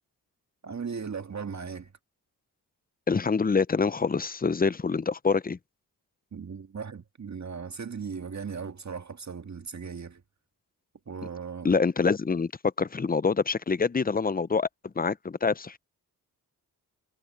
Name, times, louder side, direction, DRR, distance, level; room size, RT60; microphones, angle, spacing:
voice 1, 0.6-1.9 6.3-10.2 11.1-11.8, right 6 dB, 45° right, 1.8 m, -37 dB
voice 2, 3.1-5.6 11.6-12.5 12.8-15.8, left 5 dB, 20° left, 0.7 m, -26 dB
cardioid pair, 60°, 40 cm